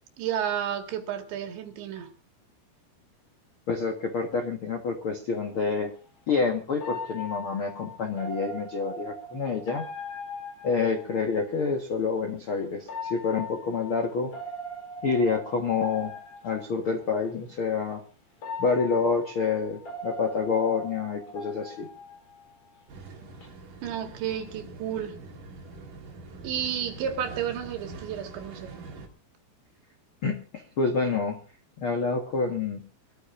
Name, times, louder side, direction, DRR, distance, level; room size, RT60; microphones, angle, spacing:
voice 1, 0.2-2.1 23.8-25.2 26.4-28.7, right 9 dB, 80° right, 4 dB, 4.2 m, -31 dB
voice 2, 3.7-5.9 6.3-9.8 10.6-14.3 15.0-16.1 16.4-18.0 18.6-21.9 30.2-31.4 31.8-32.9, left 4 dB, 75° left, 3 dB, 1.2 m, -28 dB
sound 1, 5.3-5.4 6.8-11.5 12.8-17.0 17.8-17.9 18.4-22.8 23.1-23.5, left 1 dB, 40° left, 4.9 m, -40 dB
sound 2, 22.9-29.1, right 3 dB, 55° right, 3.7 m, -44 dB
24.5 x 14.0 x 2.6 m, 0.34 s
omnidirectional pair, 5.0 m